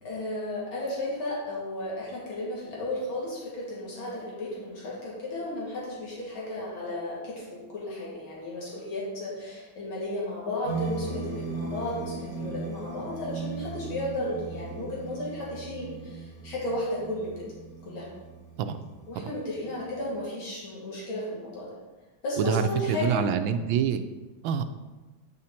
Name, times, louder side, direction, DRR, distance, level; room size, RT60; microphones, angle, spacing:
voice 1, 0.0-17.5 17.8-18.1 19.1-21.7 22.2-23.3, left 1 dB, 80° left, -5 dB, 2.8 m, -34 dB
sound 1, 10.6-20.2, right 4 dB, 60° left, 2.8 m, -38 dB
voice 2, 22.4-24.0 24.4-24.6, right 7 dB, 75° right, 9 dB, 1.3 m, -26 dB
8.8 x 5.3 x 4.3 m, 1.2 s
omnidirectional pair, 2.2 m